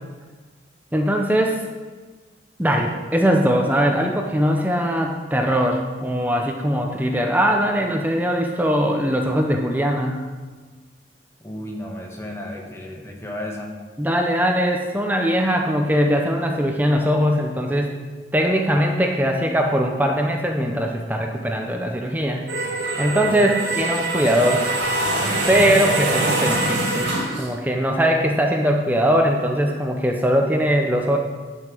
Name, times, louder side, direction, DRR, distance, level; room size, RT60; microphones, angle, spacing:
voice 1, 0.9-1.6 2.6-10.2 14.0-17.9 18.3-22.4 23.0-24.6 25.5-27.1 27.4-31.2, equal, 10° right, 2 dB, 0.7 m, -21 dB
voice 2, 11.4-13.8 22.9-23.5, left 1 dB, 15° left, 0 dB, 1.3 m, -34 dB
sound 1, 22.5-27.5, right 2 dB, 75° right, 2.6 m, -23 dB
10.5 x 5.5 x 6.2 m, 1.4 s
head